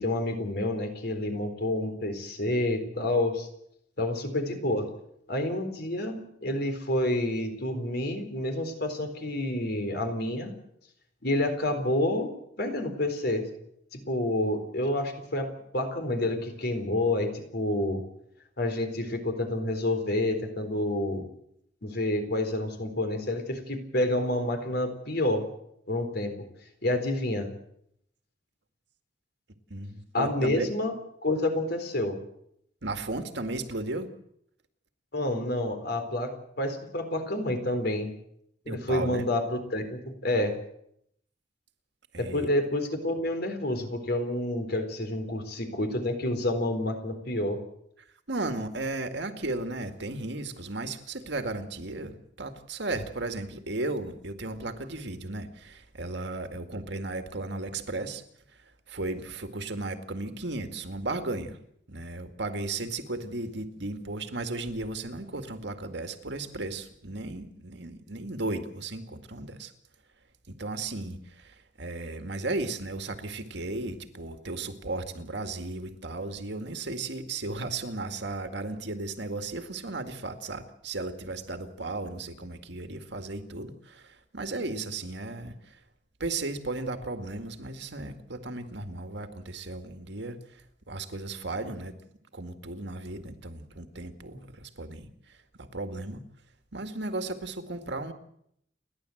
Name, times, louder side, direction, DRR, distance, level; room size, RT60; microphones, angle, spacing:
voice 1, 0.0-3.5 4.0-4.9 5.3-10.5 11.2-12.3 12.6-13.5 13.9-15.5 15.7-18.0 18.6-21.2 21.8-25.5 25.9-26.3 26.8-27.5 30.1-30.9 31.2-32.2 35.1-38.1 38.7-40.5 42.2-47.6, left 1 dB, 60° left, 6 dB, 4.0 m, -29 dB
voice 2, 29.7-30.7 32.8-34.1 38.7-39.2 42.1-42.5 48.3-58.2 58.9-61.6 61.9-69.7 70.5-85.8 86.2-90.6 90.9-91.9 92.3-95.4 95.7-96.2 96.7-98.1, right 2 dB, 70° right, 7 dB, 2.0 m, -35 dB
30.0 x 11.5 x 7.9 m, 0.73 s
head